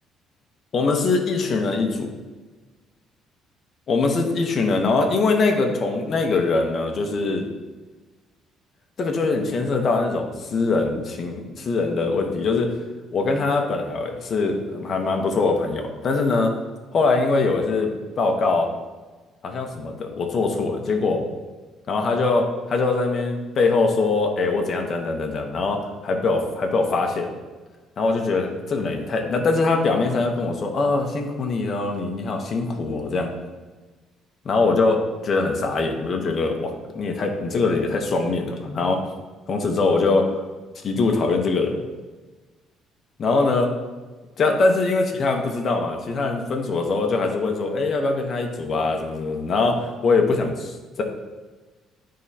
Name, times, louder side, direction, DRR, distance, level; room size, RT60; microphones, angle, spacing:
voice 1, 0.7-2.1 3.9-7.5 9.0-12.7 13.1-16.5 16.9-17.9 18.2-18.7 19.4-21.2 21.9-27.3 28.0-33.3 34.4-39.0 39.5-40.3 40.8-41.8 43.2-43.7 44.4-51.0, left 3 dB, 35° left, 3 dB, 0.9 m, -22 dB
11.0 x 3.7 x 2.8 m, 1.3 s
cardioid pair, 160°, 0 cm